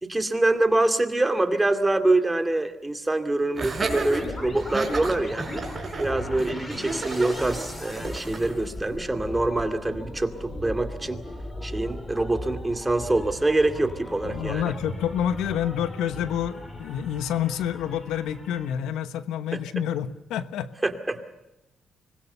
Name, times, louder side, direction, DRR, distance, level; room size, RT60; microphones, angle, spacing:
voice 1, 0.0-5.4 6.0-11.2 11.6-14.7 20.8-21.2, right 2 dB, 15° right, 7 dB, 2.3 m, -25 dB
Laughter, 3.5-8.5, right 4 dB, 30° right, 4.2 m, -32 dB
sound 1, 3.8-18.7, left 1 dB, 25° left, 5.1 m, -37 dB
voice 2, 14.2-20.7, left 9 dB, 90° left, 12 dB, 1.1 m, -28 dB
25.5 x 21.0 x 6.8 m, 1.0 s
cardioid pair, 90°, 0 cm